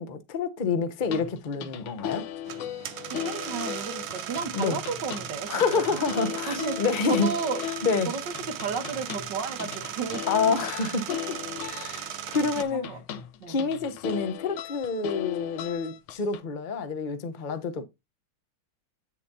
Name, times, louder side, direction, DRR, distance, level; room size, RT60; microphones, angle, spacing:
voice 1, 0.0-2.3 4.5-4.8 5.5-7.3 7.8-8.1 10.3-11.4 11.7-12.9 13.5-17.8, left 4 dB, 45° left, 0.6 m, -28 dB
sound 1, 1.0-16.4, left 10 dB, 85° left, 1.6 m, -37 dB
sound 2, 2.4-12.6, right 10 dB, 85° right, 1.6 m, -37 dB
voice 2, 3.0-6.0 6.3-7.6 8.1-10.3 11.8-12.1 12.4-13.0 13.4-13.6, right 5 dB, 60° right, 1.8 m, -34 dB
8.6 x 7.1 x 2.7 m
omnidirectional pair, 2.2 m